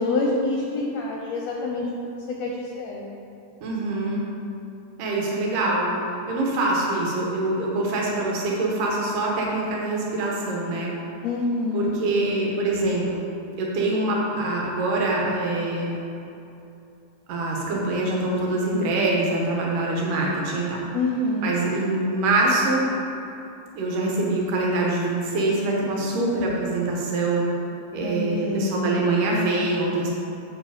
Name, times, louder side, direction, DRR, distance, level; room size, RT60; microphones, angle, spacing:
voice 1, 0.0-3.1 11.2-11.9 20.9-21.5 28.0-28.9, left 2 dB, 70° left, -1 dB, 1.7 m, -26 dB
voice 2, 3.6-4.2 5.0-5.9 6.3-10.9 11.7-13.2 13.6-16.0 17.3-20.8 21.4-22.9 23.7-27.5 27.9-30.1, right 2 dB, 85° right, -3 dB, 2.9 m, -24 dB
7.8 x 5.7 x 5.0 m, 2.8 s
omnidirectional pair, 3.7 m